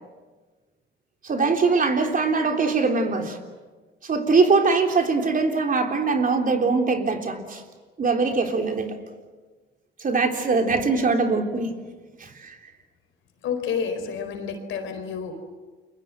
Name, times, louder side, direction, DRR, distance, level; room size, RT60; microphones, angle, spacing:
voice 1, 1.2-3.4 4.0-7.6 8.0-9.0 10.0-11.7 12.2-12.6, right 4 dB, 45° right, 4 dB, 3.6 m, -22 dB
voice 2, 13.4-15.3, left 6 dB, 80° left, 7 dB, 4.4 m, -29 dB
30.0 x 23.0 x 7.6 m, 1.3 s
cardioid pair, 90°, 20 cm